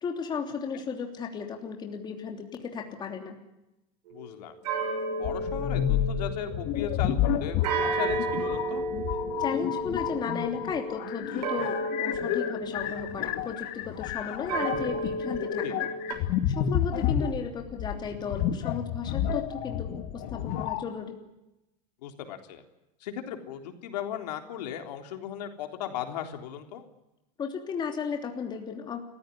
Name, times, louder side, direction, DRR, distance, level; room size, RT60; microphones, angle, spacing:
voice 1, 0.0-3.4 9.4-15.9 16.5-21.2 27.4-29.0, left 6 dB, 20° left, 3 dB, 3.1 m, -35 dB
voice 2, 4.1-4.6 5.2-8.8 15.6-15.7 22.0-22.6 23.0-26.8, left 10 dB, 85° left, 5 dB, 3.6 m, -37 dB
sound 1, 4.1-4.3 4.6-7.0 7.6-13.8 14.5-16.1, right 2 dB, 85° right, 6.4 m, -33 dB
sound 2, 5.2-20.8, left 10 dB, 50° left, 2.2 m, -30 dB
29.5 x 15.5 x 9.9 m, 0.94 s
supercardioid pair, 155°, 20 cm